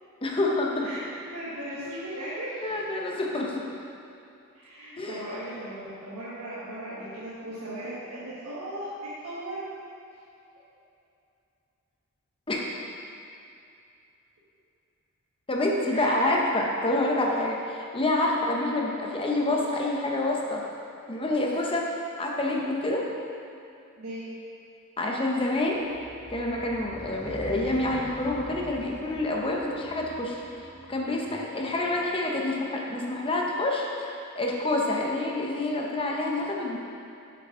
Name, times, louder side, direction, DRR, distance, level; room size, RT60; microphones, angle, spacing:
voice 1, 0.2-0.9 2.6-3.6 5.0-5.2 12.5-12.6 15.5-20.6 21.1-21.9 22.2-23.1 25.0-25.8 26.3-36.8, left 2 dB, 25° left, -2 dB, 1.0 m, -27 dB
voice 2, 0.8-2.8 4.5-8.9 9.2-9.6 15.9-16.4 17.0-17.2 24.0-24.2, right 1 dB, 70° right, -11 dB, 1.6 m, -37 dB
sound 1, 25.7-32.1, equal, 35° right, 1.3 m, -45 dB
7.6 x 7.2 x 3.9 m, 2.6 s
head